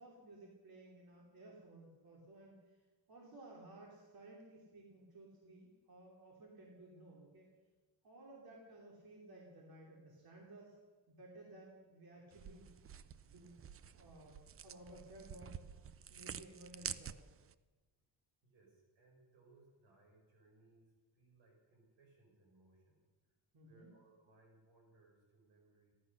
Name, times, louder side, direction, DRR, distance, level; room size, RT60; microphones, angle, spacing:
voice 1, 0.0-2.8 3.1-7.5 8.0-10.8 11.1-12.7 13.3-13.5 13.9-15.6 16.1-17.2 23.5-23.9, right 1 dB, 55° right, -1 dB, 3.0 m, -57 dB
sound 1, 12.3-17.5, right 8 dB, 30° right, 0.4 m, -49 dB
voice 2, 18.4-23.4 23.6-25.9, right 3 dB, 80° right, 0 dB, 5.2 m, -68 dB
14.5 x 11.0 x 6.6 m, 1.3 s
cardioid pair, 110°, 45 cm